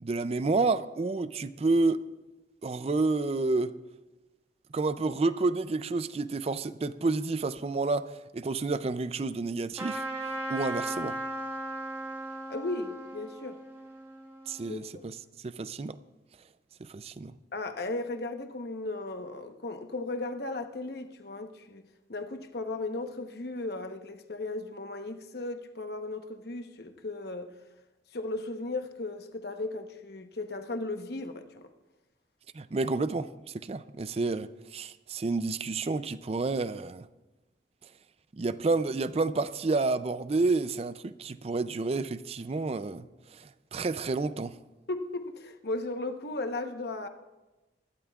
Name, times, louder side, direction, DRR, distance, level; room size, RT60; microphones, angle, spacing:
voice 1, 0.0-2.1 2.6-3.8 4.7-10.0 10.5-11.2 14.5-15.2 15.4-16.0 16.9-17.3 32.5-37.1 38.3-43.1 43.3-44.5, right 3 dB, 35° right, 0.4 m, -30 dB
Trumpet, 9.7-14.8, right 1 dB, 15° right, 1.5 m, -37 dB
voice 2, 12.5-13.6 14.7-14.9 17.5-21.8 22.1-27.5 28.1-31.7 44.9-47.1, left 2 dB, 60° left, 1.0 m, -36 dB
23.5 x 12.5 x 2.4 m
head